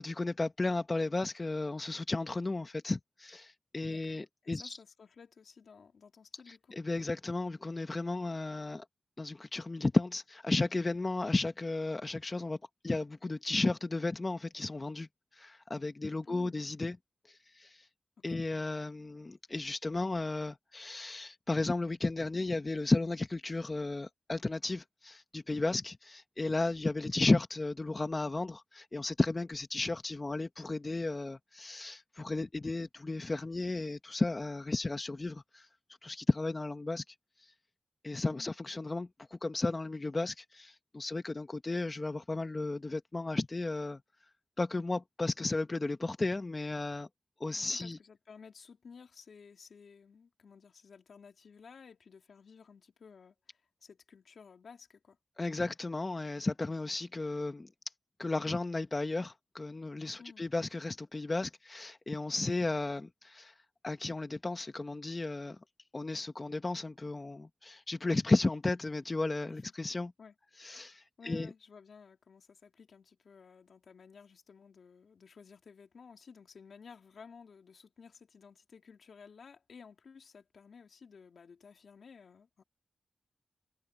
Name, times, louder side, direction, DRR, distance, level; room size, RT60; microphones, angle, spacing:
voice 1, 0.0-4.8 6.5-8.8 9.2-12.6 12.8-15.1 15.3-17.0 17.3-17.9 18.2-35.7 36.0-37.5 38.0-44.0 44.6-47.1 47.4-48.0 55.4-57.7 58.2-63.5 63.8-65.6 65.9-70.1 70.6-71.5, left 2 dB, 35° left, 1.1 m, -34 dB
voice 2, 3.8-6.8 16.2-16.7 18.2-18.4 38.3-38.6 47.6-55.2 60.2-60.5 69.5-69.9 70.2-70.3 71.2-82.6, left 5 dB, 75° left, 3.0 m, -55 dB
cardioid pair, 55°, 0 cm